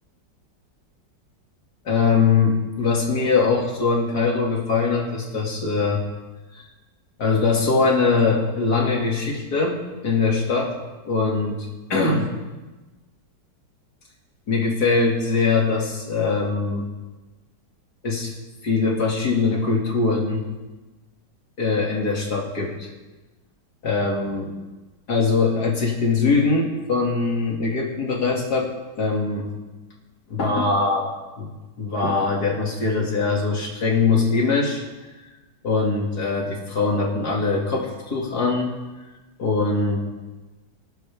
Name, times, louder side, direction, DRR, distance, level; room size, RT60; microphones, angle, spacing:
voice 1, 1.8-6.0 6.5-6.6 7.2-10.8 11.0-12.3 14.5-16.9 18.0-18.3 18.6-20.4 21.6-22.9 23.8-24.5 25.1-29.5 30.3-31.1 31.4-31.5 31.8-34.8 35.6-38.7 39.4-40.0, left 4 dB, 60° left, -1 dB, 3.0 m, -22 dB
25.5 x 11.5 x 3.6 m, 1.2 s
omnidirectional pair, 1.9 m